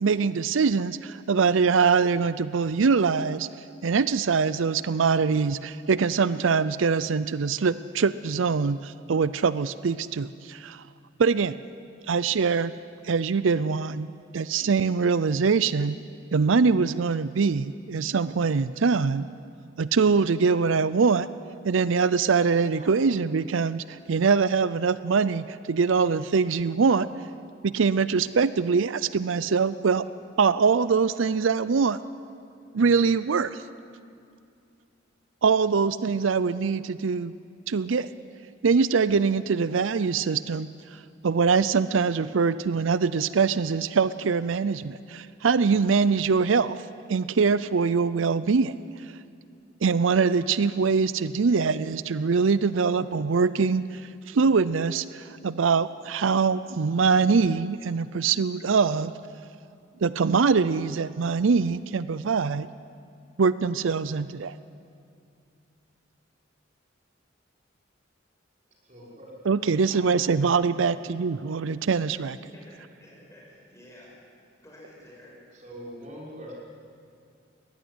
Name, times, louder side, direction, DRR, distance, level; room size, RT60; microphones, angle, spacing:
voice 1, 0.0-3.5 3.8-10.8 11.2-11.6 12.1-12.7 13.0-14.1 14.3-16.0 16.3-19.3 19.8-21.3 21.6-27.1 27.6-30.1 30.4-32.0 32.7-33.6 35.4-37.3 37.7-38.1 38.6-40.7 41.2-46.8 47.1-48.7 49.8-59.1 60.0-62.7 63.4-64.5 69.5-72.4, right 5 dB, 85° right, 15 dB, 0.5 m, -23 dB
voice 2, 68.8-69.3 75.5-76.5, equal, 40° right, -4 dB, 5.8 m, -42 dB
voice 3, 72.3-75.4, equal, 15° left, -3 dB, 6.8 m, -51 dB
20.5 x 18.0 x 9.8 m, 2.4 s
head